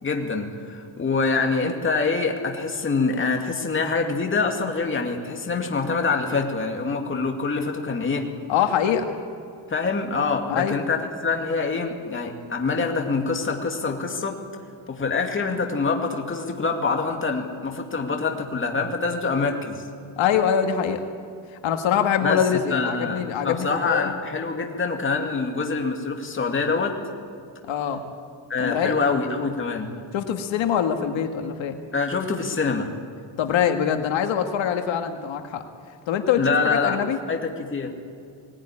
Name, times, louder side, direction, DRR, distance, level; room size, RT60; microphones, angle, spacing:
voice 1, 0.0-8.3 9.7-14.4 14.9-19.9 22.2-22.4 22.7-27.0 28.5-29.9 31.9-32.9 36.4-37.0 37.3-37.9, left 4 dB, 25° left, 2 dB, 2.3 m, -25 dB
voice 2, 8.5-9.1 10.5-10.8 20.2-21.0 21.6-24.1 27.7-28.0 28.6-28.9 30.1-31.8 33.4-35.6 36.1-37.2, left 8 dB, 80° left, 5 dB, 1.8 m, -24 dB
20.0 x 19.0 x 9.9 m, 2.3 s
cardioid pair, 160°, 45 cm